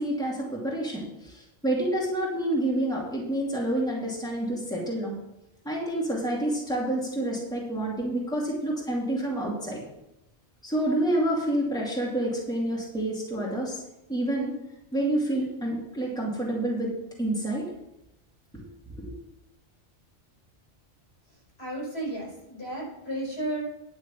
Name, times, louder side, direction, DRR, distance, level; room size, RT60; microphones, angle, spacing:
voice 1, 0.0-5.1 5.6-9.8 10.6-13.8 14.1-14.6 14.9-16.9 17.2-17.7 18.5-18.7 18.9-19.1, right 1 dB, 5° left, -4 dB, 2.5 m, -28 dB
voice 2, 21.6-23.6, right 1 dB, 60° left, -4 dB, 5.3 m, -33 dB
10.5 x 6.2 x 6.9 m, 0.91 s
omnidirectional pair, 1.2 m